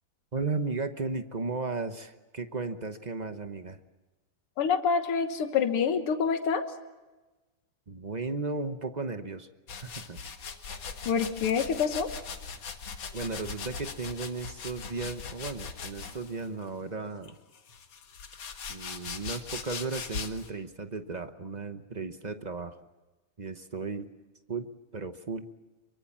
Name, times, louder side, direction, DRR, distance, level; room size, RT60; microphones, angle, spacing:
voice 1, 0.3-3.8 7.9-10.2 13.1-17.4 18.7-22.8 23.4-24.1 24.5-25.5, right 4 dB, 45° right, 8 dB, 0.5 m, -35 dB
voice 2, 4.6-6.6 11.1-12.1, left 6 dB, 90° left, 7 dB, 2.3 m, -26 dB
sound 1, 9.7-16.5 17.2-20.5, left 5 dB, 65° left, 2.4 m, -40 dB
24.5 x 23.5 x 7.3 m, 1.2 s
omnidirectional pair, 2.4 m